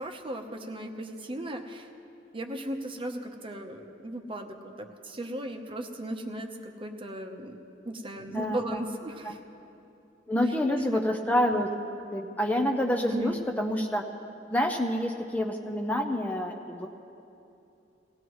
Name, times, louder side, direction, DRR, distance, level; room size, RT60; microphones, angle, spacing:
voice 1, 0.0-1.9 2.3-7.6 7.8-9.4 10.7-11.0 13.1-13.4, right 1 dB, 30° right, 3 dB, 0.9 m, -36 dB
voice 2, 8.3-8.8 9.2-9.4 10.3-11.7 12.1-14.0 14.5-16.9, left 1 dB, 10° left, 3 dB, 0.6 m, -28 dB
19.5 x 17.5 x 3.1 m, 2.8 s
head